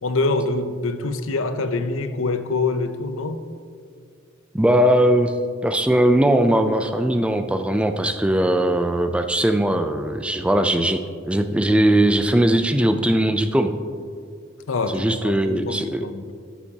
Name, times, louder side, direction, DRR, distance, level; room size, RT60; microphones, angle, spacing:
voice 1, 0.0-3.4 14.7-16.3, left 3 dB, 75° left, 0.6 m, -25 dB
voice 2, 4.5-5.3 5.6-11.0 11.3-13.7 14.9-16.0, right 1 dB, 5° right, 0.3 m, -19 dB
14.0 x 7.2 x 2.8 m
head